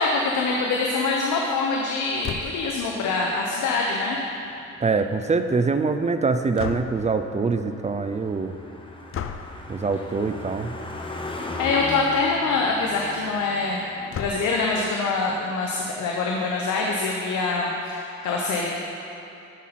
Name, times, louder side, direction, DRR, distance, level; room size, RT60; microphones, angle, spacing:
voice 1, 0.0-4.2 11.6-13.8 14.1-18.7, left 3 dB, 75° left, -1 dB, 1.0 m, -24 dB
sound 1, 2.2-2.8 6.6-7.2 9.1-9.6 10.8-11.0 11.4-11.5 11.8-11.9 14.1-14.7, left 8 dB, 45° left, 0.5 m, -34 dB
Car passing by, 4.2-15.4, left 2 dB, 15° left, 1.0 m, -39 dB
voice 2, 4.8-8.6 9.7-10.7, right 4 dB, 25° right, 8 dB, 0.5 m, -24 dB
13.5 x 5.7 x 4.3 m, 2.8 s
cardioid pair, 90°, 30 cm